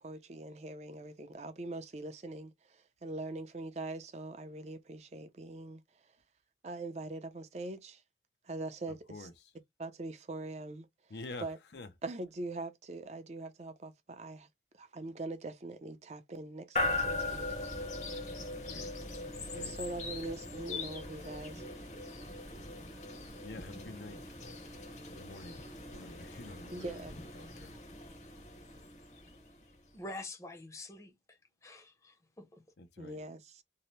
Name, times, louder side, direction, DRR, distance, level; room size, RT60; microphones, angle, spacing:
voice 1, 0.0-6.1 6.6-8.0 8.4-9.3 9.8-10.9 11.4-11.6 12.0-14.5 14.7-17.4 19.5-21.6 26.7-27.2 33.0-33.6, right 2 dB, 40° right, 0.4 m, -42 dB
voice 2, 8.9-9.5 11.1-11.9 18.7-18.9 19.5-19.8 23.4-24.3 25.0-25.6 25.9-27.7 32.8-33.2, left 2 dB, 80° left, 0.6 m, -48 dB
sound 1, 16.8-29.7, left 2 dB, 45° left, 0.8 m, -40 dB
voice 3, 29.9-32.6, left 2 dB, 15° left, 0.5 m, -47 dB
2.7 x 2.0 x 3.0 m
head